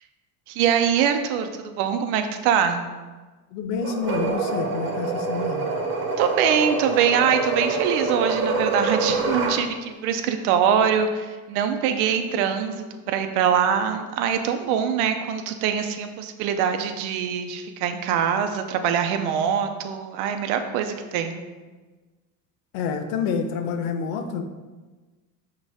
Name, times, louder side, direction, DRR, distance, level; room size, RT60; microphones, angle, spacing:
voice 1, 0.5-2.8 6.2-12.7 13.1-21.4, right 8 dB, 75° right, 7 dB, 0.8 m, -23 dB
voice 2, 3.5-5.7 22.7-24.4, left 5 dB, 75° left, 6 dB, 0.8 m, -28 dB
sound 1, 3.8-9.6, right 3 dB, 50° right, 1.4 m, -26 dB
6.1 x 3.2 x 5.0 m, 1.3 s
supercardioid pair, 90°, 43 cm